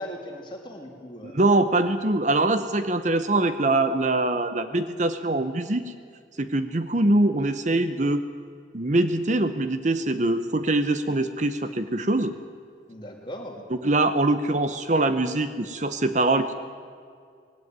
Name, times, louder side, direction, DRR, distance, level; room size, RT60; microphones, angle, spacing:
voice 1, 0.0-1.3 12.9-13.6, equal, 25° left, 1 dB, 3.2 m, -38 dB
voice 2, 1.2-5.9 6.4-8.2 8.7-12.3 13.8-16.5, right 2 dB, 40° right, 10 dB, 0.8 m, -23 dB
19.5 x 17.0 x 9.5 m, 2.2 s
head